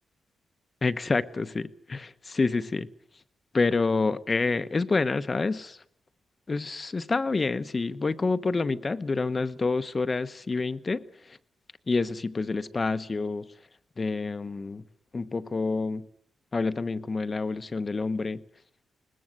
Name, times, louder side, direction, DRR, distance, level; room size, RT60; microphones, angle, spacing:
voice 1, 0.8-2.9 3.5-5.8 6.5-11.4 11.9-13.5 14.0-14.8 15.1-16.1 16.5-18.4, left 3 dB, 30° left, 0.9 m, -28 dB
22.0 x 20.0 x 7.8 m
cardioid pair, 125°, 0 cm